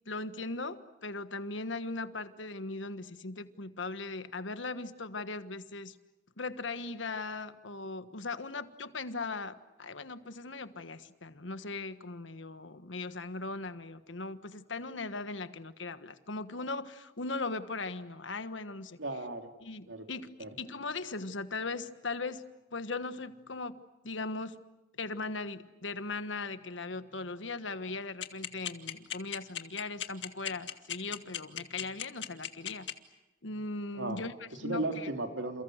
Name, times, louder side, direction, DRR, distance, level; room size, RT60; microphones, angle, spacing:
voice 1, 0.1-6.0 6.4-19.0 19.6-20.3 20.6-22.4 22.7-23.8 24.0-24.6 25.0-32.9 33.4-35.1, left 3 dB, 85° left, 11 dB, 1.4 m, -39 dB
voice 2, 19.0-19.5 19.9-20.0 20.4-20.5 33.9-34.2 34.6-35.6, right 2 dB, 85° right, 4 dB, 3.5 m, -35 dB
sound 1, 28.2-32.9, left 10 dB, 65° left, 2.0 m, -35 dB
29.5 x 29.0 x 6.6 m, 0.99 s
head